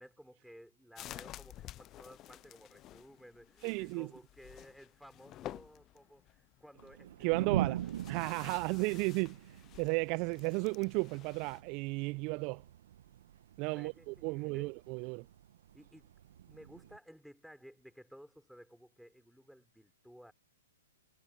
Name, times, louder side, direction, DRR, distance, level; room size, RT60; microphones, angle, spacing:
voice 1, 0.0-7.9 8.4-8.8 13.7-14.7 15.7-16.1 16.5-20.3, equal, ahead, 3.9 m, -56 dB
sound 1, 1.0-11.6, left 14 dB, 30° left, 0.6 m, -52 dB
voice 2, 3.6-4.1 7.2-7.8 8.1-12.6 13.6-15.3, right 30 dB, 40° right, 0.5 m, -34 dB
sound 2, 6.8-17.0, right 12 dB, 60° right, 1.1 m, -42 dB
hypercardioid pair, 125°, 0 cm